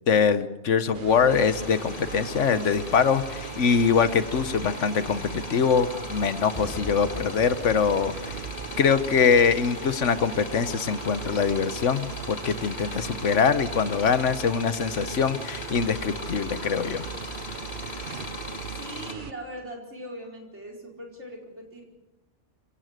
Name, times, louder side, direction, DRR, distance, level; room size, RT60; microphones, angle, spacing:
voice 1, 0.1-8.4 8.8-17.0, left 6 dB, 85° left, 13 dB, 1.4 m, -23 dB
sound 1, 0.9-19.3, right 6 dB, 50° right, 1.0 m, -38 dB
sound 2, 1.3-19.1, left 3 dB, 60° left, 1.9 m, -40 dB
Boom / Shatter / Crushing, 6.5-10.5 11.1-11.2, equal, ahead, 6.4 m, -43 dB
voice 2, 18.7-21.8, right 1 dB, 70° right, 0 dB, 5.0 m, -40 dB
25.0 x 17.0 x 6.6 m, 0.98 s
omnidirectional pair, 1.2 m